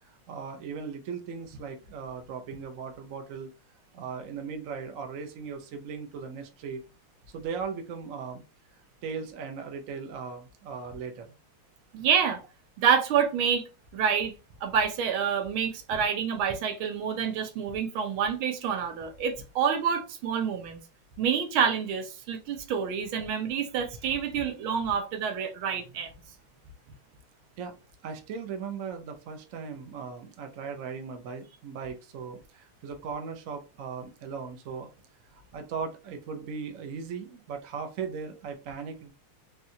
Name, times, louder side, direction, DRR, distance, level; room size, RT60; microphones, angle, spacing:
voice 1, 0.1-3.5 3.9-6.8 7.3-8.4 9.0-11.3 27.6-27.8 28.0-34.9 35.3-39.1, right 5 dB, 65° right, 0.8 m, -38 dB
voice 2, 11.9-12.4 12.8-13.7 13.9-14.3 14.6-20.8 21.2-26.1, right 7 dB, 80° right, 1.6 m, -27 dB
4.3 x 2.4 x 2.7 m
omnidirectional pair, 2.2 m